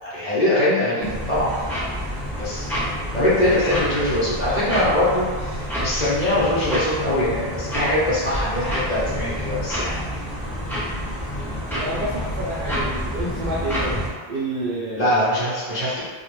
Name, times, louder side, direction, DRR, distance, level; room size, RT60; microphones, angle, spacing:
voice 1, 0.0-1.5 2.4-2.7 3.1-10.1 15.0-16.0, left 1 dB, 45° left, -9 dB, 0.8 m, -22 dB
sound 1, 1.0-14.1, equal, 5° left, 0.5 m, -28 dB
voice 2, 11.4-14.0 14.3-15.2, right 1 dB, 60° right, -7 dB, 0.6 m, -29 dB
2.3 x 2.0 x 3.1 m, 1.5 s
omnidirectional pair, 1.1 m